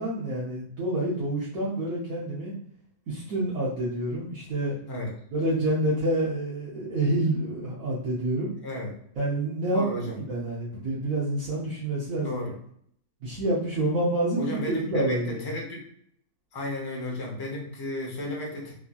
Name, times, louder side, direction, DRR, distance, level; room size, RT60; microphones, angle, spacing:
voice 1, 0.0-2.5 3.1-4.7 5.3-8.5 9.2-9.9 10.3-12.4 13.2-15.4, right 1 dB, 65° right, -8 dB, 1.2 m, -28 dB
voice 2, 9.7-10.2 10.7-10.8 12.2-12.5 14.4-15.9 16.5-18.7, left 1 dB, 25° left, -1 dB, 0.4 m, -33 dB
3.5 x 2.7 x 2.3 m, 0.67 s
omnidirectional pair, 1.7 m